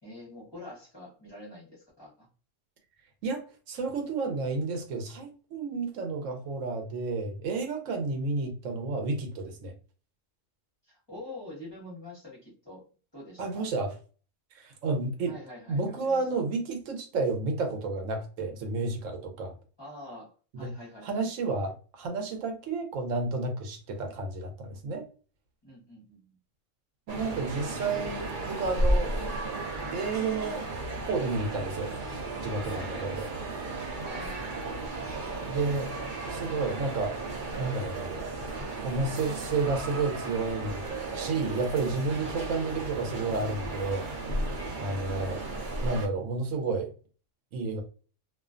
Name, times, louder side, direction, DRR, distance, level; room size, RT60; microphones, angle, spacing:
voice 1, 0.0-2.3 10.8-12.9 13.1-13.7 15.3-16.4 19.8-21.3 25.6-26.4 32.6-33.1 34.0-34.4 45.1-45.5, left 1 dB, 25° left, -5 dB, 0.8 m, -46 dB
voice 2, 3.2-9.7 13.4-13.9 14.5-15.3 15.7-19.5 20.5-20.7 21.0-25.1 27.1-29.1 29.9-30.7 31.1-33.3 35.5-35.9 36.3-37.1 37.6-38.1 38.8-40.8 41.1-44.1 44.8-45.4 45.8-46.9 47.5-47.8, right 3 dB, 80° right, 5 dB, 1.0 m, -31 dB
sound 1, 27.1-46.1, right 2 dB, 50° right, 0.7 m, -34 dB
2.4 x 2.2 x 2.4 m, 0.38 s
omnidirectional pair, 1.3 m